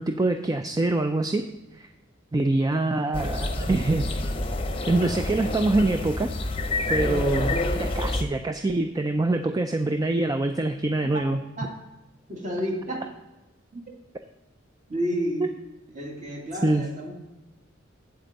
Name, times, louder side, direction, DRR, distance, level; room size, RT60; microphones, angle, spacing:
voice 1, 0.0-1.5 1.8-1.9 2.3-4.3 4.9-6.3 6.9-11.4 15.4-15.5 16.6-16.9, right 2 dB, 20° right, 7 dB, 0.4 m, -25 dB
sound 1, 3.1-8.2, left 2 dB, 30° left, 0.8 m, -28 dB
voice 2, 12.3-13.1 13.7-13.8 14.9-15.5 15.9-17.3, equal, 40° right, 0 dB, 1.8 m, -31 dB
8.5 x 7.8 x 4.0 m, 1.0 s
head